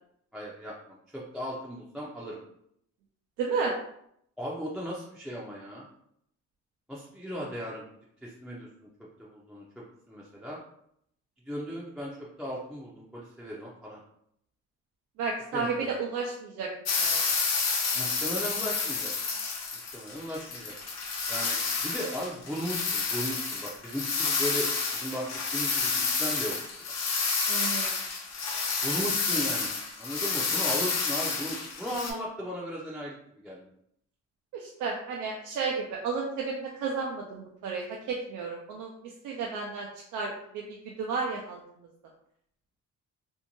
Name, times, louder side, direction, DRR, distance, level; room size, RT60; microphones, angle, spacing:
voice 1, 0.3-2.4 4.4-5.9 6.9-7.8 8.2-8.7 9.2-9.6 10.1-10.6 11.5-14.0 15.5-15.9 17.9-19.1 19.9-20.7 21.3-26.5 28.8-29.7 30.0-33.6, equal, ahead, -6 dB, 0.5 m, -36 dB
voice 2, 3.4-3.7 15.2-16.7 17.0-17.2 27.5-27.9 34.5-41.6, right 4 dB, 85° right, -1 dB, 0.5 m, -32 dB
sound 1, 16.8-32.1, left 4 dB, 55° left, 0.7 m, -30 dB
2.6 x 2.1 x 2.9 m, 0.72 s
cardioid pair, 90°, 30 cm